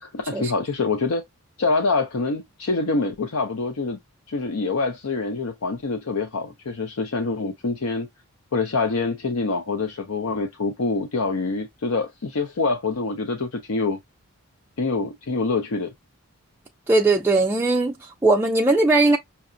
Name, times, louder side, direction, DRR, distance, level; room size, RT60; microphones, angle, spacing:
voice 1, 0.0-1.2 1.6-4.0 4.3-8.1 8.5-14.0 14.8-15.9, left 3 dB, 70° left, 0.6 m, -25 dB
voice 2, 16.9-19.2, right 2 dB, 10° right, 0.3 m, -19 dB
5.7 x 2.1 x 2.5 m
head